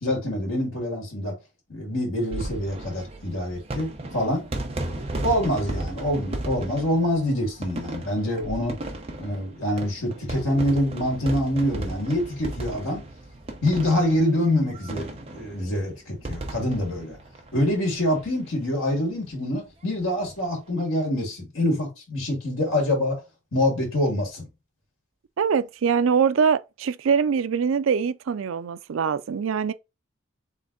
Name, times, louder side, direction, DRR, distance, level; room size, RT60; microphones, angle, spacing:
voice 1, 0.0-1.3 1.7-4.5 4.8-8.8 9.1-13.0 13.6-17.2 17.5-23.2 23.5-24.5, left 1 dB, 75° left, 2.4 m, -25 dB
sound 1, 2.2-18.2 18.5-18.6 18.8-18.9 20.2-20.4, right 1 dB, 30° right, 0.9 m, -35 dB
voice 2, 25.4-29.7, right 6 dB, 75° right, 0.4 m, -23 dB
3.8 x 3.5 x 3.9 m
head